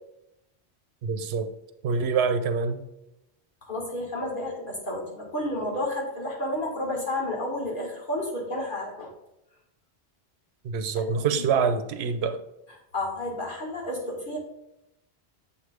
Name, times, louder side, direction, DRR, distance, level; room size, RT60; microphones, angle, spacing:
voice 1, 1.0-1.5 1.8-2.8 10.6-12.4, right 5 dB, 90° right, 0.9 m, -25 dB
voice 2, 3.6-9.1 11.0-11.4 12.9-14.4, left 1 dB, 55° left, 1.8 m, -31 dB
7.2 x 3.2 x 5.0 m
omnidirectional pair, 1.0 m